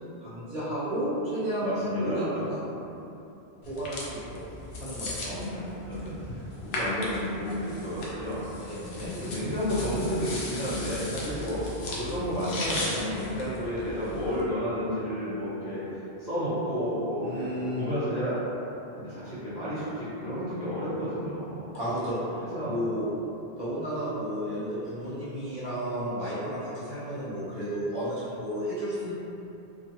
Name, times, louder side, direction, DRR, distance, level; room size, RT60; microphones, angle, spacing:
voice 1, 0.2-2.6 3.6-4.4 4.8-5.4 8.6-9.1 17.2-17.9 21.7-22.3 22.6-23.1 23.6-29.1, equal, 45° right, -11 dB, 0.8 m, -32 dB
voice 2, 1.6-2.5 5.3-6.2 6.6-8.8 9.1-15.8 16.2-18.4 19.0-21.7 22.5-22.8, equal, 45° left, -12 dB, 1.1 m, -31 dB
sound 1, 3.6-14.4, left 1 dB, 80° left, 0.8 m, -37 dB
2.6 x 2.3 x 2.9 m, 2.9 s
omnidirectional pair, 1.1 m